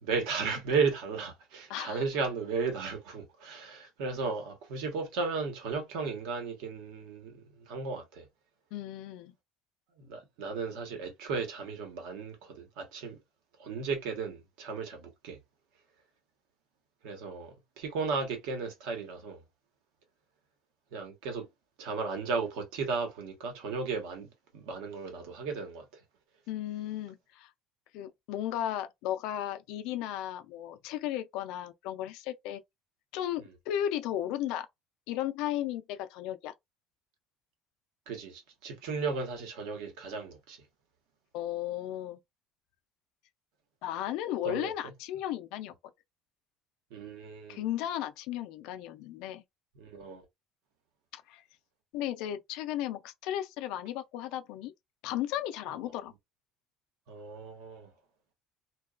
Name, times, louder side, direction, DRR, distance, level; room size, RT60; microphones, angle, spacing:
voice 1, 0.0-8.3 10.0-13.2 13.6-15.4 17.0-19.4 20.9-21.4 21.8-25.8 38.1-40.6 44.4-44.9 46.9-47.6 49.7-50.2 57.1-57.9, right 4 dB, 85° right, 1.1 m, -35 dB
voice 2, 1.7-2.0 8.7-9.3 26.5-27.5 27.9-32.6 33.1-34.7 35.1-36.5 41.3-42.2 43.8-45.7 47.5-49.4 51.1-51.4 51.9-54.7 55.0-56.1, left 12 dB, 65° left, 0.4 m, -35 dB
2.9 x 2.3 x 2.4 m
cardioid pair, 180°, 0 cm